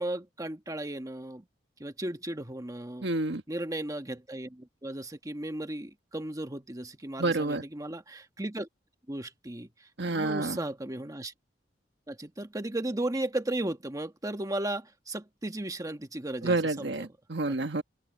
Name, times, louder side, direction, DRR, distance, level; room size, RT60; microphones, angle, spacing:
voice 1, 0.0-1.4 1.8-3.1 3.5-8.7 9.1-11.3 12.1-17.1 17.5-17.6, right 1 dB, 20° right, 1.3 m, -35 dB
voice 2, 3.0-3.4 7.2-7.6 10.0-10.6 16.4-17.8, right 2 dB, 70° right, 1.6 m, -29 dB
open air
head